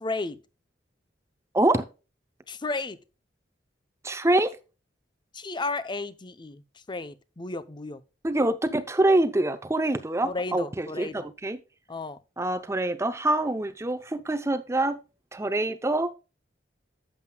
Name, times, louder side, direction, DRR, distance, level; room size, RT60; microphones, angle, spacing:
voice 1, 0.0-0.4 2.5-3.0 5.3-6.6 6.9-8.0 10.2-11.3 11.9-12.2, left 3 dB, 25° left, 0.7 m, -33 dB
voice 2, 1.5-1.8 4.0-4.5 8.2-11.6 12.4-15.0 15.3-16.1, right 2 dB, 15° right, 0.6 m, -25 dB
11.5 x 7.7 x 2.3 m
head